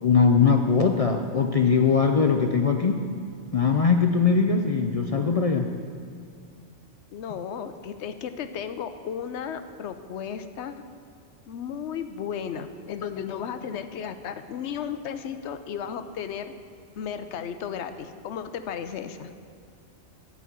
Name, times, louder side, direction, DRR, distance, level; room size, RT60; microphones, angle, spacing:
voice 1, 0.0-3.0 3.5-5.7, left 5 dB, 60° left, 4 dB, 0.3 m, -21 dB
voice 2, 7.1-10.8 11.5-16.5 17.0-19.3, left 7 dB, 75° left, 10 dB, 0.9 m, -34 dB
11.0 x 5.5 x 7.2 m, 2.3 s
omnidirectional pair, 1.2 m